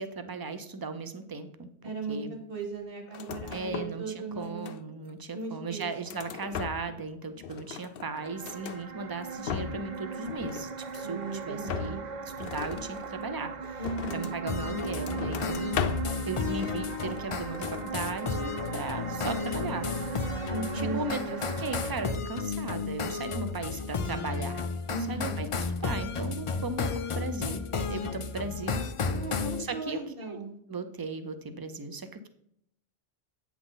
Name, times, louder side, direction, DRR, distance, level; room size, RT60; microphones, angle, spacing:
voice 1, 0.0-2.3 3.5-12.0 12.4-13.8 14.1-15.8 16.2-19.9 20.7-24.6 25.1-28.8 29.6-30.4 30.7-32.3, right 3 dB, 25° right, 9 dB, 0.6 m, -37 dB
voice 2, 1.8-4.7 5.3-5.9 11.0-12.0 13.8-14.4 20.5-21.5 24.9-25.4 29.1-30.6, right 3 dB, 65° right, 2 dB, 1.9 m, -37 dB
sound 1, 3.1-4.1 4.3-5.1 5.6-7.1 7.4-8.8 9.2-9.9 10.2-11.2 11.6-14.4 14.8-16.2 16.5-17.3 17.5-17.9, left 7 dB, 65° left, 0.8 m, -37 dB
sound 2, 8.0-22.1, right 5 dB, 45° right, 0.9 m, -38 dB
sound 3, 14.5-29.6, left 5 dB, 40° left, 0.5 m, -33 dB
8.9 x 5.9 x 4.0 m, 0.71 s
omnidirectional pair, 1.0 m